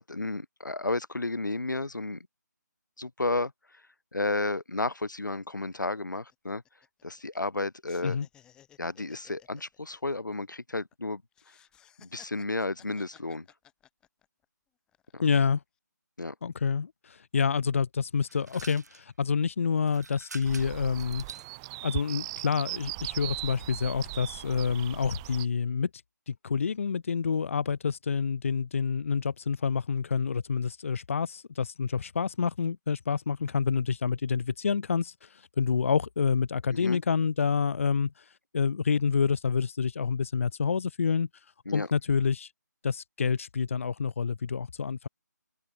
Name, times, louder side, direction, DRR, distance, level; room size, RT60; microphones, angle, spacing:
voice 1, 0.0-2.3 3.0-3.5 4.1-6.6 7.0-8.2 8.8-11.2 12.0-13.5 15.1-15.2 16.2-16.3 36.7-37.0 41.7-41.9, left 2 dB, 90° left, 2.5 m, -32 dB
sound 1, 5.1-5.2 5.4-5.6 6.0-7.6 7.8-10.9 11.3-14.4 14.9-15.5, left 10 dB, 10° left, 7.0 m, -58 dB
voice 2, 15.2-15.6 16.4-21.2 21.8-25.9 26.3-38.2 38.5-41.3 41.7-42.5 42.8-45.1, left 6 dB, 45° left, 1.3 m, -28 dB
sound 2, 18.3-19.1 19.8-21.5, right 4 dB, 60° right, 5.7 m, -47 dB
sound 3, 20.4-25.5, right 23 dB, 15° right, 3.2 m, -39 dB
figure-of-eight pair, 160°, 10 cm